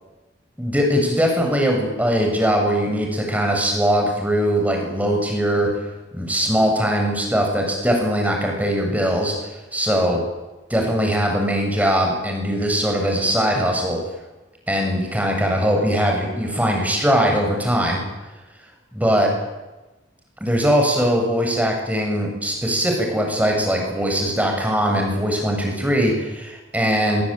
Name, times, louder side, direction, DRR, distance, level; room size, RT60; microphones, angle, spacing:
voice 1, 0.6-5.7 6.1-10.2 10.7-14.0 14.7-18.0 18.9-19.3 20.4-27.2, equal, 10° right, 1 dB, 7.8 m, -21 dB
26.0 x 23.5 x 9.2 m, 1.1 s
head